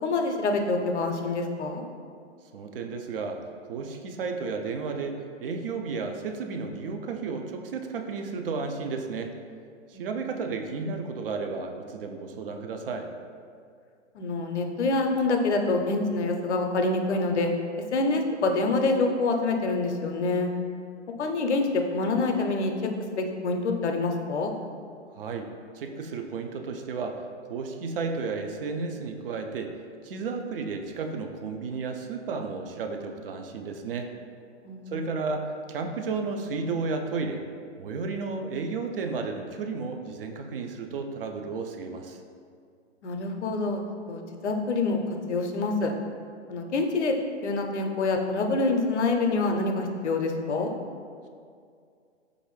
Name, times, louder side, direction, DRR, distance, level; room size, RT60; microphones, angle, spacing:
voice 1, 0.0-1.8 9.9-10.1 14.1-17.5 17.9-20.5 21.2-22.7 23.1-24.5 34.6-35.0 43.0-43.8 44.1-45.0 45.3-45.9 46.5-47.1 47.4-50.7, left 3 dB, 70° left, 4 dB, 0.6 m, -26 dB
voice 2, 2.5-3.4 3.7-9.3 9.9-13.1 25.2-25.5 25.7-27.2 27.5-29.8 30.0-34.1 34.9-37.4 37.8-42.2, right 4 dB, 50° right, 4 dB, 0.4 m, -33 dB
4.6 x 2.5 x 3.1 m, 2.3 s
figure-of-eight pair, 120°, 36 cm